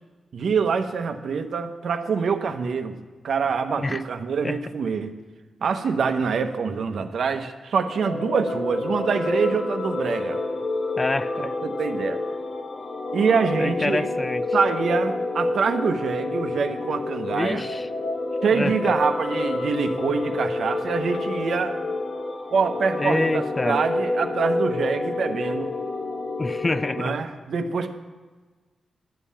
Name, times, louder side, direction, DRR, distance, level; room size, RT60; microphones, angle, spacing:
voice 1, 0.3-3.0 3.2-5.1 5.6-10.4 11.4-12.2 13.1-14.1 14.5-17.6 18.4-21.7 22.5-25.7 27.0-27.9, right 5 dB, 70° right, 7 dB, 0.8 m, -25 dB
sound 1, 7.8-27.1, left 2 dB, 40° left, 1.0 m, -28 dB
voice 2, 11.0-11.5 13.6-14.4 17.3-17.9 18.5-18.9 22.9-23.8 26.4-27.1, left 2 dB, 25° left, 14 dB, 0.4 m, -27 dB
11.5 x 5.6 x 8.5 m, 1.3 s
cardioid pair, 100°, 0 cm